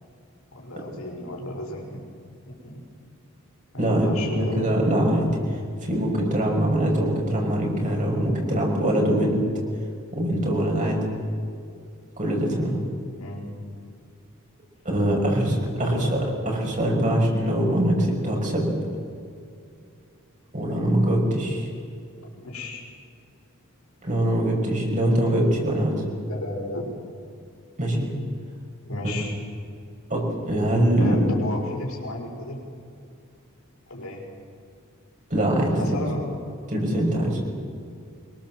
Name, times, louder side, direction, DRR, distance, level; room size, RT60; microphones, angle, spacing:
voice 1, 0.5-2.0 2.6-2.8 3.7-4.7 13.2-13.5 15.8-16.4 22.4-22.8 26.3-26.9 28.9-29.3 31.0-32.6 33.9-34.2 35.8-36.3, left 1 dB, 80° left, 1 dB, 5.5 m, -33 dB
voice 2, 3.8-5.4 5.8-9.4 10.1-11.0 12.2-12.7 14.8-16.2 16.5-18.7 20.5-21.7 24.0-26.0 27.8-28.1 30.1-31.2 35.3-36.0 36.7-37.4, right 1 dB, 35° right, -1 dB, 6.4 m, -23 dB
25.0 x 22.5 x 7.7 m, 2.4 s
head